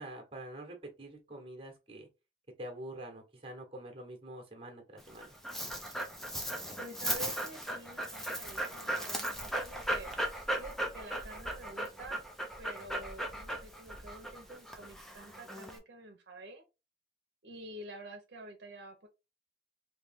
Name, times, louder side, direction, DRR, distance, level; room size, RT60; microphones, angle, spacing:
voice 1, 0.0-2.1 2.6-5.4, right 1 dB, 30° right, 1.1 m, -46 dB
Dog, 5.0-15.8, right 1 dB, ahead, 0.5 m, -37 dB
voice 2, 6.8-10.1 10.6-12.2 12.6-16.6 17.4-19.1, right 2 dB, 70° right, 0.7 m, -48 dB
3.2 x 2.8 x 3.4 m
head